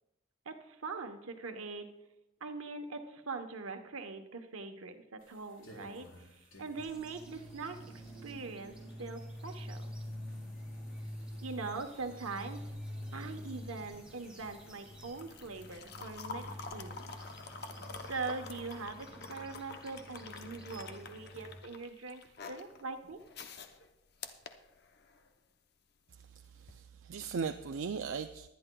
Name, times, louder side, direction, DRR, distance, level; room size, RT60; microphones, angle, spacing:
voice 1, 0.4-1.9 2.4-7.8 8.2-8.7 9.0-9.9 11.4-12.7 13.1-17.0 18.1-22.2 22.5-23.2, right 4 dB, 90° right, 6 dB, 1.1 m, -42 dB
sound 1, 5.2-18.8, left 1 dB, 70° left, 4.4 m, -62 dB
sound 2, 6.8-21.6, equal, 5° right, 2.2 m, -47 dB
sound 3, 13.0-25.3 26.6-26.8, left 4 dB, 50° left, 0.7 m, -48 dB
voice 2, 26.3-28.5, right 5 dB, 70° right, 7 dB, 0.4 m, -38 dB
20.5 x 10.5 x 2.3 m, 0.91 s
head